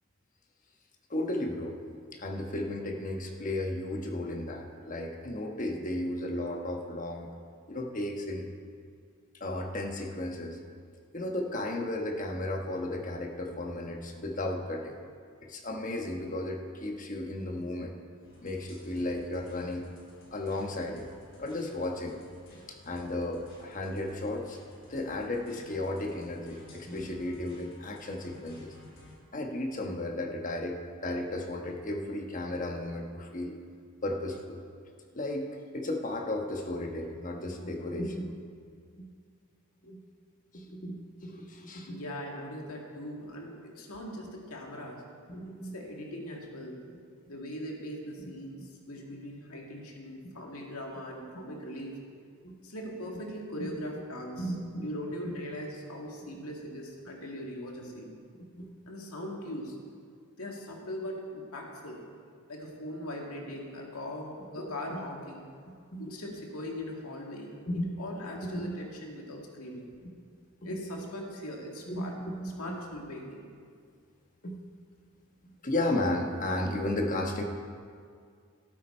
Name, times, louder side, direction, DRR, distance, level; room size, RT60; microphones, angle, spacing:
voice 1, 1.1-1.8 2.1-7.3 7.7-8.5 9.4-10.6 11.1-15.0 15.4-17.9 18.4-19.9 20.3-21.1 21.4-22.2 22.5-24.6 24.9-28.7 29.3-33.5 34.0-34.6 35.1-38.4 38.9-39.1 39.8-40.0 40.5-42.0 45.3-45.8 49.1-49.2 52.4-52.5 54.4-54.9 55.2-55.3 58.6-59.1 64.9-65.0 65.9-66.2 67.7-67.9 68.4-68.8 70.6-71.0 71.9-72.7 74.4-74.6 75.6-77.4, left 1 dB, 35° left, 3 dB, 1.2 m, -34 dB
sound 1, 18.2-29.2, left 1 dB, 60° left, 3.9 m, -55 dB
voice 2, 41.9-45.0 45.7-46.8 47.3-52.0 52.6-54.5 54.8-58.1 58.9-59.8 60.4-62.0 62.5-65.5 66.0-69.9 70.6-72.1 72.6-73.5, equal, 85° left, 0 dB, 2.0 m, -40 dB
14.0 x 12.0 x 4.4 m, 2.2 s
head